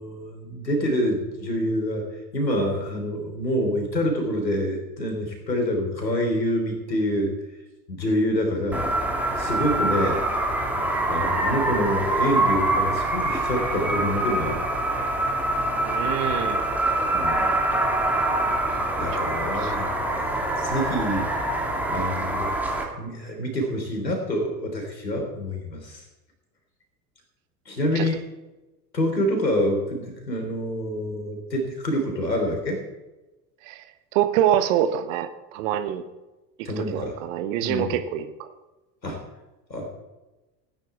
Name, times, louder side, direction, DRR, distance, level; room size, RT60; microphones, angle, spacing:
voice 1, 0.0-2.0 2.3-7.3 7.9-8.8 9.4-10.3 11.1-14.6 17.1-17.5 19.0-20.3 20.6-21.3 21.9-22.6 23.0-26.0 27.7-28.2 28.9-32.8 36.6-37.2 37.6-37.9 39.0-39.2 39.7-39.9, equal, 80° left, 2 dB, 3.7 m, -26 dB
sound 1, 8.7-22.8, right 2 dB, 5° right, 2.4 m, -25 dB
voice 2, 15.8-16.6 18.7-18.8 19.1-19.2 19.5-19.9 27.9-28.1 33.6-33.8 34.1-36.0 36.6-38.5, right 10 dB, 50° right, 10 dB, 1.3 m, -26 dB
16.0 x 9.3 x 4.7 m, 1.1 s
figure-of-eight pair, 80°, 50 cm